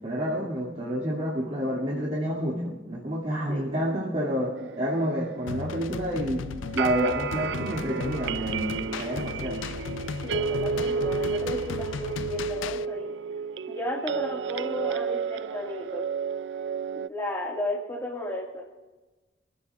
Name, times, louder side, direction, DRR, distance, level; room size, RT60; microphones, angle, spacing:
voice 1, 0.0-9.6, equal, 40° right, -6 dB, 2.3 m, -29 dB
sound 1, 4.6-17.1, right 6 dB, 65° right, 0.3 m, -32 dB
sound 2, 5.5-12.9, left 6 dB, 90° left, 0.4 m, -36 dB
voice 2, 10.2-13.1 13.7-16.0 17.0-18.6, left 1 dB, 15° left, -4 dB, 1.8 m, -34 dB
25.0 x 15.5 x 2.4 m, 1.2 s
head